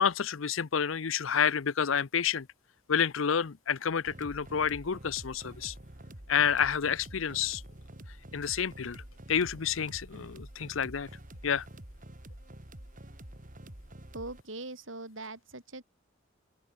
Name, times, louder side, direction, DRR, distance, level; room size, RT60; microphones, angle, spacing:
voice 1, 0.0-2.5 2.9-5.7 6.3-7.6 8.3-9.0 9.3-11.1 11.4-11.6, left 7 dB, 75° left, 0.7 m, -29 dB
sound 1, 4.0-14.4, right 1 dB, 40° right, 3.2 m, -48 dB
voice 2, 14.1-15.8, right 2 dB, 70° right, 7.0 m, -41 dB
open air
head